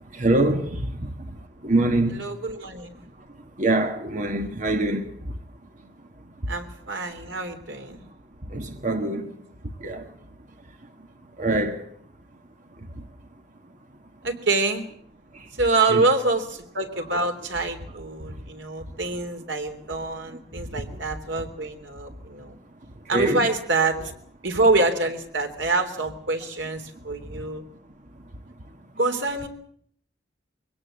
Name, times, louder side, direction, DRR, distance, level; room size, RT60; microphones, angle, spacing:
voice 1, 0.0-2.4 3.6-5.4 6.4-6.5 8.4-9.4 9.6-10.1 11.4-11.9 12.8-13.1 15.3-15.5 15.9-16.0 18.2-18.4 20.3-21.0 23.1-23.4 27.2-27.4, right 2 dB, 40° right, 1.6 m, -26 dB
voice 2, 2.1-3.0 6.5-8.0 14.2-14.8 15.6-22.6 23.1-24.1 24.4-27.7 29.0-29.5, right 3 dB, 80° right, 3.3 m, -26 dB
23.5 x 17.5 x 7.7 m
head